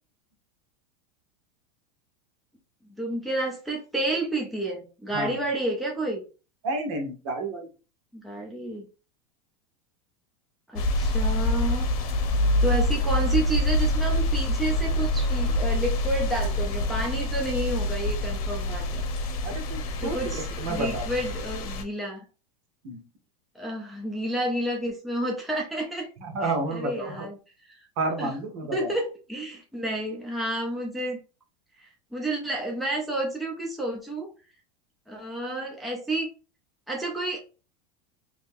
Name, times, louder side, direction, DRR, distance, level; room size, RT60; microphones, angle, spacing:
voice 1, 3.0-6.2 8.1-8.9 10.7-11.9 12.6-19.0 20.0-22.2 23.5-26.1 26.4-27.4 28.2-28.3 28.7-31.2 32.1-34.3 35.1-36.3 36.9-37.4, right 1 dB, ahead, -3 dB, 0.6 m, -30 dB
voice 2, 6.6-7.6 19.4-20.2 20.6-21.0 22.8-23.0 26.2-27.3 28.0-28.9, right 2 dB, 55° right, 3 dB, 1.2 m, -30 dB
sound 1, 10.8-21.8, left 1 dB, 70° left, 0.9 m, -26 dB
3.1 x 2.8 x 3.6 m, 0.33 s
supercardioid pair, 155°, 19 cm